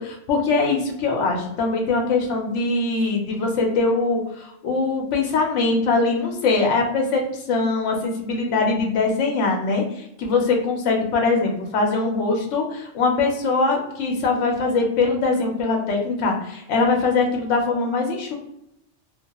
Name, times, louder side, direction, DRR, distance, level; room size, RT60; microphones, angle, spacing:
voice 1, 0.0-18.3, left 3 dB, 80° left, 1 dB, 0.9 m, -22 dB
2.4 x 2.2 x 2.8 m, 0.79 s
omnidirectional pair, 1.3 m